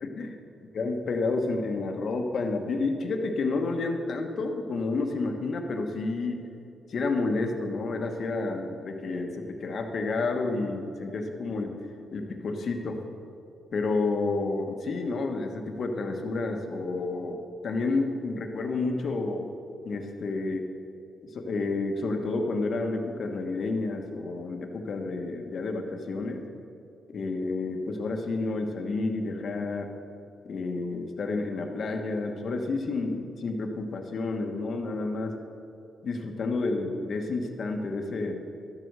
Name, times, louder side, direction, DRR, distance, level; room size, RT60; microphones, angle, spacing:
voice 1, 0.0-0.4 0.7-6.4 6.9-11.8 12.1-13.0 13.7-19.5 19.8-20.7 21.2-26.4 27.1-29.9 30.4-35.3 36.0-38.4, left 3 dB, 50° left, 4 dB, 1.2 m, -30 dB
12.5 x 7.9 x 6.7 m, 2.7 s
wide cardioid pair, 150°, 0 cm